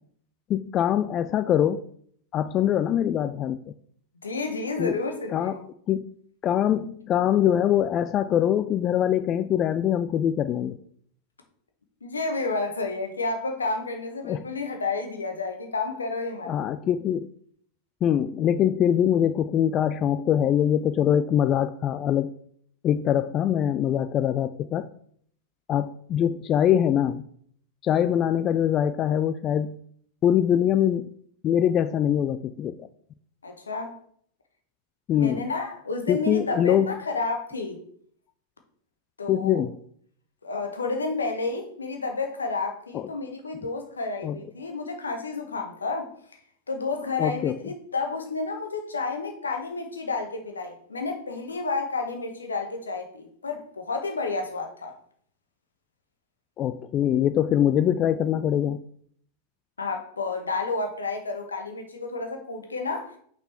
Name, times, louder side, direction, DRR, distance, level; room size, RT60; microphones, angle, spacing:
voice 1, 0.5-1.8 2.3-3.6 4.8-4.9 5.3-5.6 5.9-6.1 6.4-10.8 14.2-14.4 16.4-17.3 18.0-22.3 22.8-24.9 25.7-27.2 27.8-29.7 30.2-31.1 31.4-32.9 35.1-35.5 36.1-36.9 39.3-39.8 42.9-43.1 44.2-44.4 47.2-47.5 56.6-58.8, left 10 dB, 30° left, 11 dB, 0.3 m, -23 dB
voice 2, 4.2-5.6 12.0-16.5 33.4-34.0 35.1-37.8 39.2-39.6 40.4-46.1 46.7-54.9 59.8-63.1, left 3 dB, 75° left, 5 dB, 1.1 m, -30 dB
5.8 x 5.5 x 4.3 m, 0.63 s
figure-of-eight pair, 90°, 0 cm